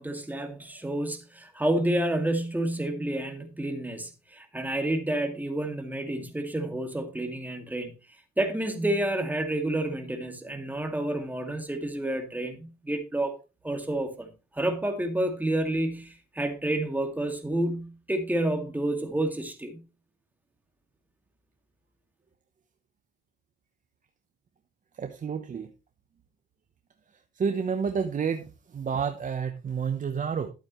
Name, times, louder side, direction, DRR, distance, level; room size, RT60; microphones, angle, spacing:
voice 1, 0.0-7.9 8.4-13.4 13.6-19.8, right 1 dB, 10° right, 2.1 m, -29 dB
voice 2, 24.9-25.7 27.1-30.5, right 6 dB, 40° right, 0.9 m, -30 dB
11.5 x 8.4 x 3.1 m
cardioid pair, 90°, 20 cm